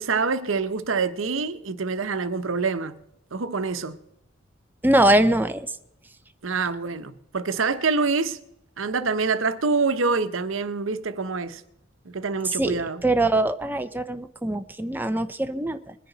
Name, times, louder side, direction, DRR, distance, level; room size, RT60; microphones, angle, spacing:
voice 1, 0.0-3.0 3.3-4.0 6.4-8.4 8.8-11.6 12.1-13.0, right 4 dB, 85° right, 0.8 m, -26 dB
voice 2, 4.8-5.7 12.6-15.9, right 1 dB, 10° right, 0.6 m, -22 dB
21.5 x 10.0 x 4.0 m
head